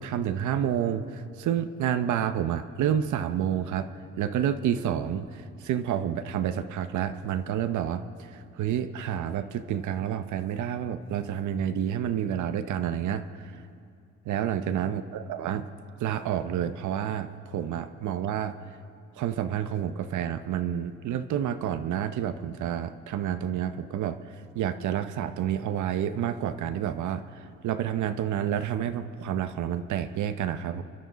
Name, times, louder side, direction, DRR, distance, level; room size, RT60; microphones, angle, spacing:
voice 1, 0.0-3.9 4.2-13.2 14.3-15.6 16.0-18.5 19.2-24.2 24.5-30.8, right 9 dB, 75° right, 10 dB, 0.8 m, -29 dB
29.5 x 11.0 x 4.0 m, 2.4 s
cardioid pair, 90°, 30 cm